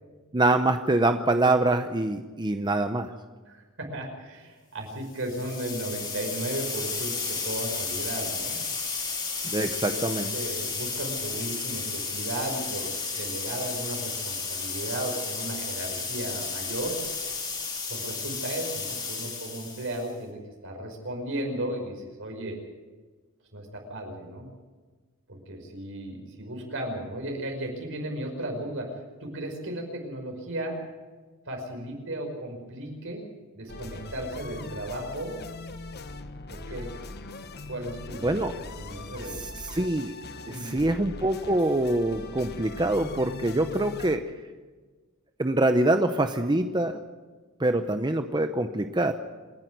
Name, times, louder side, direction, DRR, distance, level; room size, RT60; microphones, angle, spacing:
voice 1, 0.3-3.1 9.4-10.3 38.2-38.5 39.4-40.1 40.5-44.2 45.4-47.0 47.6-49.1, right 2 dB, 20° right, 7 dB, 0.8 m, -25 dB
voice 2, 3.5-8.6 9.6-17.0 17.9-22.6 23.5-24.5 25.3-30.8 31.5-33.2 33.5-35.4 36.5-36.9 37.7-38.3 38.8-39.6 40.5-40.8, right 1 dB, 65° right, 2 dB, 5.5 m, -35 dB
sound 1, 5.1-20.1, left 4 dB, 20° left, 4.4 m, -33 dB
sound 2, 33.7-44.2, left 2 dB, 50° left, 1.2 m, -41 dB
27.5 x 10.5 x 9.3 m, 1.4 s
head